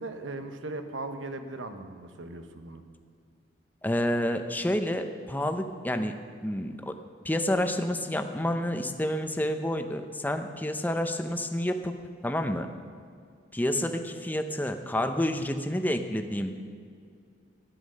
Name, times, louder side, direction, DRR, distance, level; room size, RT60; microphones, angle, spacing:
voice 1, 0.0-2.8, right 2 dB, 85° right, 7 dB, 1.1 m, -38 dB
voice 2, 3.8-7.0 7.2-11.9 12.2-12.7 13.5-16.6, left 1 dB, 10° left, 7 dB, 0.7 m, -29 dB
13.0 x 10.5 x 6.4 m, 2.3 s
head